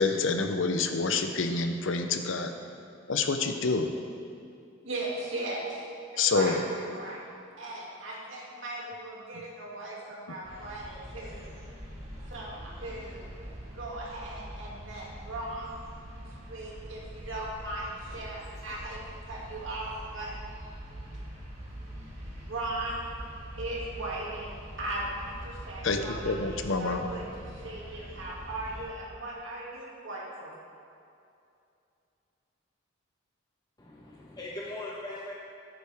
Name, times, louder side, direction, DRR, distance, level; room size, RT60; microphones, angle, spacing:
voice 1, 0.0-2.5 3.1-3.9 6.2-6.6 25.8-27.0, left 4 dB, 75° left, 6 dB, 0.7 m, -27 dB
voice 2, 4.8-7.2 7.6-11.5 12.3-13.2 13.7-15.7 16.1-20.4 22.5-23.0 23.6-30.5, right 2 dB, 75° right, -5 dB, 2.5 m, -38 dB
sound 1, 10.4-28.9, equal, 30° right, 2.3 m, -44 dB
voice 3, 33.8-35.3, left 2 dB, 20° left, -4 dB, 1.1 m, -40 dB
13.5 x 9.3 x 3.6 m, 2.6 s
head